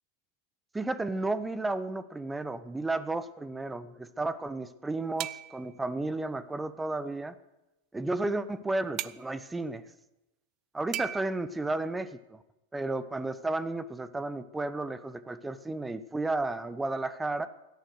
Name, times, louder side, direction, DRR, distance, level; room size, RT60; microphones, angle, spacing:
voice 1, 0.7-7.3 7.9-9.8 10.8-12.4 12.7-17.5, right 2 dB, 10° right, 15 dB, 0.8 m, -33 dB
sound 1, 5.2-5.7 9.0-9.2 10.9-11.2, right 15 dB, 35° right, 0.5 m, -36 dB
17.5 x 12.5 x 6.5 m, 0.97 s
figure-of-eight pair, 90°, 0 cm